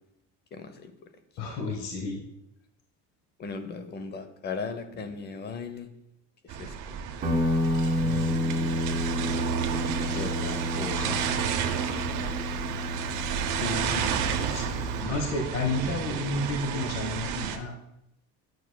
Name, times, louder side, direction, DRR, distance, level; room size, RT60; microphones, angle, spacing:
voice 1, 0.5-0.9 3.4-5.9 6.6-7.1 13.6-15.0, left 4 dB, 30° left, 9 dB, 0.6 m, -37 dB
voice 2, 1.4-2.2 7.9-8.8 9.5-9.7 10.1-11.2 13.7-14.0 14.4-17.7, left 3 dB, 55° left, 1 dB, 1.1 m, -33 dB
sound 1, 6.5-17.6, right 8 dB, 70° right, 0.8 m, -32 dB
Guitar, 7.2-15.1, left 1 dB, 25° right, 1.7 m, -30 dB
9.3 x 6.0 x 2.2 m, 0.83 s
cardioid pair, 135°, 32 cm